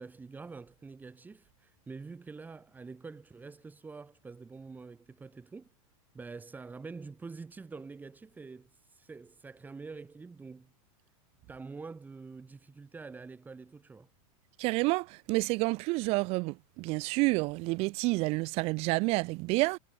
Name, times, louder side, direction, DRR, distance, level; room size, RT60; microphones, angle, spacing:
voice 1, 0.0-5.7 6.1-10.7 11.5-14.1, right 4 dB, 10° right, 6.7 m, -46 dB
voice 2, 14.6-19.8, right 25 dB, 35° right, 0.9 m, -29 dB
supercardioid pair, 160°, 18 cm